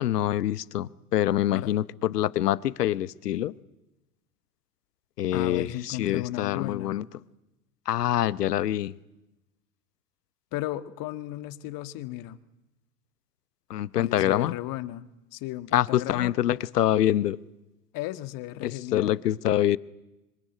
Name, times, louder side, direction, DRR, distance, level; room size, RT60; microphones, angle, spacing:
voice 1, 0.0-3.5 5.2-7.0 7.9-8.9 13.7-14.5 15.7-17.4 18.6-19.8, left 12 dB, 75° left, 1.0 m, -25 dB
voice 2, 5.3-6.9 10.5-12.4 14.0-16.3 17.9-19.2, left 15 dB, 45° left, 1.7 m, -35 dB
26.0 x 24.0 x 9.3 m
hypercardioid pair, 90°, 47 cm